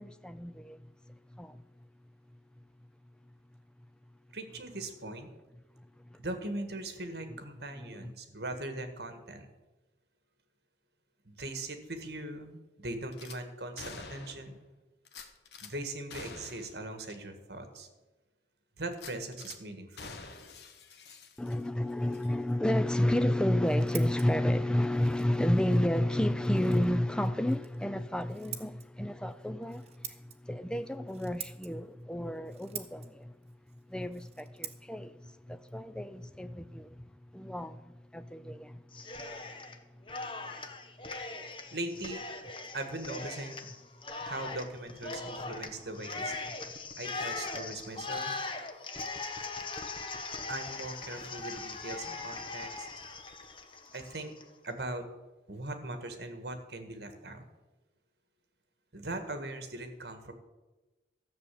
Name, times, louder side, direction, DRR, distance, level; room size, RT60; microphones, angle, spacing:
voice 1, 0.0-1.6 6.1-6.2 7.8-8.1 21.4-33.3 33.9-39.0 46.6-46.7, left 1 dB, 5° left, 0.4 m, -31 dB
voice 2, 4.3-5.3 6.2-9.5 11.2-14.6 15.6-17.9 18.8-20.1 41.4-42.2 42.7-43.7 44.2-46.3 47.0-48.3 50.5-52.9 53.9-54.3 54.6-55.1 55.5-57.4 58.9-60.3, right 2 dB, 65° right, 1.7 m, -40 dB
Gunshot gunfire / Glass, 13.1-13.4 13.8-14.5 15.1-15.7 16.1-16.8 17.1-17.2 17.6-17.7 18.9-19.6 20.0-21.8 22.1-22.3, left 4 dB, 70° left, 1.3 m, -47 dB
Scissors, 23.3-36.9, right 10 dB, 35° right, 1.0 m, -49 dB
Cheering, 38.9-39.8 40.1-54.4, left 3 dB, 30° left, 1.0 m, -40 dB
13.5 x 6.8 x 8.4 m
head